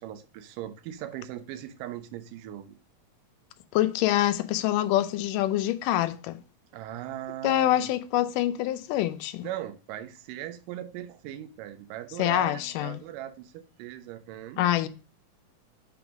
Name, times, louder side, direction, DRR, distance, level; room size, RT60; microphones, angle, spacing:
voice 1, 0.0-2.8 6.7-7.9 9.4-14.7, right 12 dB, 85° right, 2.3 m, -39 dB
voice 2, 3.7-6.4 7.4-9.5 12.2-13.0 14.6-14.9, left 13 dB, 85° left, 2.2 m, -25 dB
6.2 x 3.7 x 5.8 m
omnidirectional pair, 3.7 m